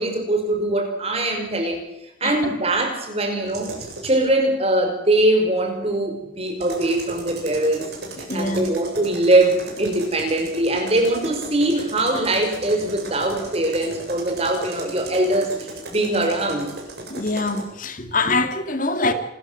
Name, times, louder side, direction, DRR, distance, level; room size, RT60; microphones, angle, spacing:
voice 1, 0.0-1.8 2.2-3.7 4.0-7.9 8.3-16.7, right 1 dB, 30° right, 5.7 m, -22 dB
sound 1, 3.5-4.2 6.5-17.7, right 2 dB, 55° right, 8.0 m, -36 dB
voice 2, 8.3-8.7 17.1-19.1, left 3 dB, 40° left, 2.1 m, -24 dB
27.5 x 14.5 x 7.7 m
head